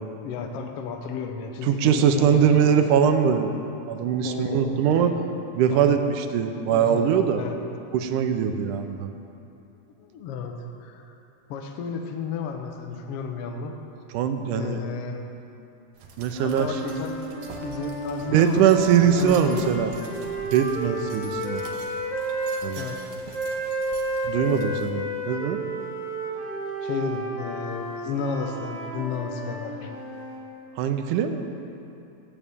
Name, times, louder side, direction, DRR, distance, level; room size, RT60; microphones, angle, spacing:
voice 1, 0.2-2.7 4.2-5.1 5.7-6.0 6.7-7.1 7.4-7.6 10.0-11.0 11.5-13.7 14.5-15.2 16.4-17.2 17.6-18.6 18.9-19.8 22.8-23.0 26.8-30.0, left 5 dB, 70° left, 4 dB, 1.5 m, -33 dB
voice 2, 1.6-3.5 3.9-5.1 5.6-7.4 7.9-9.1 14.1-14.8 16.2-16.8 18.3-19.9 20.5-21.6 22.6-22.9 24.3-25.6 30.8-31.7, right 8 dB, 85° right, 7 dB, 2.2 m, -22 dB
sound 1, 16.0-24.9, right 4 dB, 65° right, 1.9 m, -46 dB
sound 2, 16.3-22.6 23.3-30.4, right 1 dB, 25° left, 1.1 m, -32 dB
18.0 x 8.6 x 3.5 m, 2.7 s
omnidirectional pair, 3.6 m